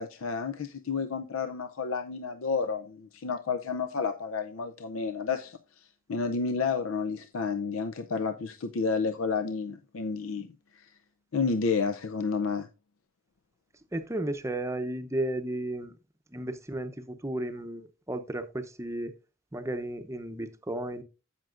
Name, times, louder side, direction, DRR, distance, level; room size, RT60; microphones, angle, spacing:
voice 1, 0.0-10.9 11.3-12.7, left 5 dB, 90° left, 0.6 m, -31 dB
voice 2, 13.9-15.9 16.3-19.1 19.5-21.0, right 1 dB, 15° right, 0.7 m, -34 dB
15.5 x 5.9 x 2.5 m
head